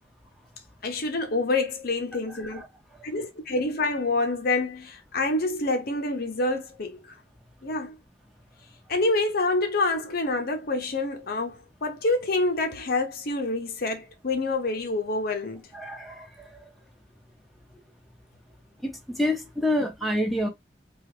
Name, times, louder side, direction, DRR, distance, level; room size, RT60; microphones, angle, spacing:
voice 1, 0.8-2.6 3.0-7.0 7.6-8.0 8.9-15.6, left 2 dB, 55° left, 0.8 m, -27 dB
voice 2, 2.3-2.7 15.7-16.7 17.7-17.8 18.8-20.5, left 1 dB, ahead, 0.9 m, -28 dB
3.9 x 2.4 x 3.1 m
head